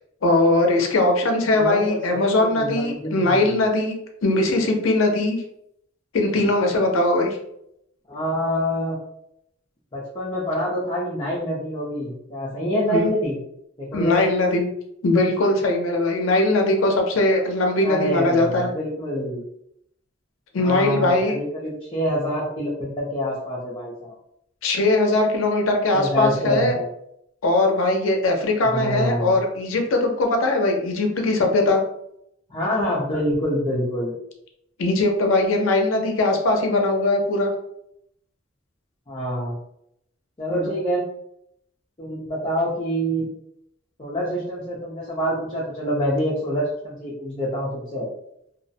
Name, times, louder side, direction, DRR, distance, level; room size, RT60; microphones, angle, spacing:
voice 1, 0.2-3.9 4.2-5.4 6.1-7.4 12.9-13.1 13.9-14.7 15.0-18.7 20.5-21.4 24.6-26.7 27.4-31.8 34.8-37.5 40.5-40.7, left 2 dB, 90° left, 3 dB, 0.5 m, -20 dB
voice 2, 1.5-3.6 8.1-9.0 9.9-13.4 13.8-14.3 17.8-19.5 20.6-24.1 25.9-26.9 28.6-29.4 32.5-34.1 39.1-39.5 40.4-41.0 42.0-43.3 44.0-48.1, equal, 25° left, -7 dB, 0.5 m, -26 dB
2.3 x 2.0 x 2.6 m, 0.76 s
head